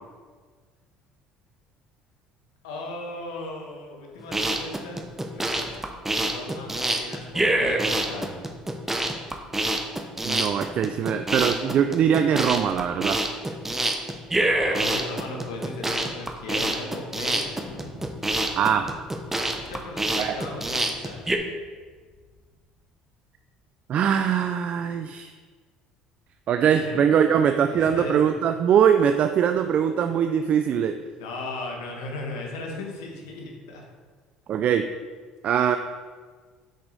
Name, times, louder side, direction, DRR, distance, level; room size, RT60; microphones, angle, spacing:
voice 1, 2.6-5.0 5.3-5.9 6.2-8.4 14.4-17.6 19.6-21.3 26.7-27.4 27.7-28.3 31.2-33.8, left 2 dB, 85° left, 1 dB, 1.1 m, -37 dB
sound 1, 4.2-21.4, right 1 dB, 10° right, 0.7 m, -26 dB
voice 2, 10.2-13.2 18.6-18.9 20.2-20.4 23.9-25.3 26.5-31.0 34.5-34.9 35.4-35.8, right 8 dB, 55° right, 7 dB, 0.3 m, -22 dB
Thunder, 17.5-22.7, left 2 dB, 60° left, 1.4 m, -48 dB
6.3 x 4.9 x 4.0 m, 1.5 s
hypercardioid pair, 70°, 3 cm